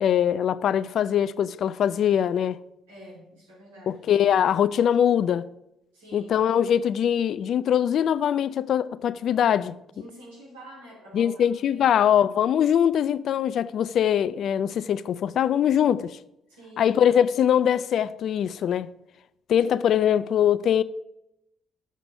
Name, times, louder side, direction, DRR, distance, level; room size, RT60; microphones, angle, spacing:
voice 1, 0.0-2.6 3.9-5.4 6.1-9.7 11.1-16.2 16.8-18.9 19.5-20.8, left 9 dB, 60° left, 0.4 m, -22 dB
voice 2, 2.9-4.0 5.9-6.3 9.9-12.0 16.5-17.0 19.8-19.9, right 1 dB, 85° right, 3.0 m, -47 dB
7.6 x 5.2 x 6.4 m
hypercardioid pair, 50°, 0 cm